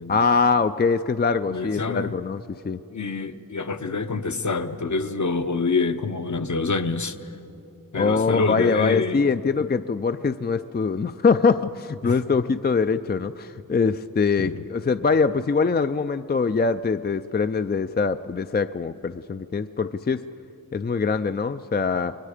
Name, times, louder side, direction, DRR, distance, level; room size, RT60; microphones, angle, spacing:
voice 1, 0.1-2.8 7.9-20.2 20.7-22.2, left 4 dB, 30° left, 10 dB, 0.4 m, -23 dB
voice 2, 1.5-2.2 2.9-7.2 7.9-9.2 12.0-12.2 14.4-14.6, left 4 dB, 55° left, 8 dB, 0.9 m, -26 dB
29.0 x 21.5 x 5.0 m, 2.9 s
wide cardioid pair, 70°, 34 cm